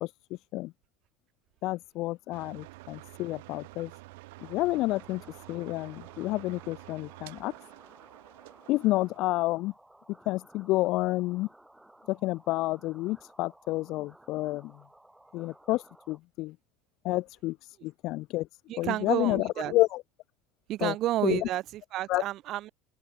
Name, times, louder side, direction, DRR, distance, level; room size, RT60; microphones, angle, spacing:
voice 1, 1.6-3.9 4.5-5.2 5.5-7.5 8.7-9.7 10.3-11.5 12.1-14.7 15.3-16.5 17.0-18.5 18.8-20.0 20.8-20.9 21.2-21.5 22.1-22.2, left 19 dB, 45° left, 0.4 m, -29 dB
sound 1, 2.3-9.2, right 23 dB, 85° right, 1.0 m, -49 dB
sound 2, 4.4-16.2, right 1 dB, 5° right, 4.7 m, -57 dB
voice 2, 18.7-19.7 20.7-22.7, right 14 dB, 40° right, 0.7 m, -31 dB
open air
cardioid pair, 175°, 0 cm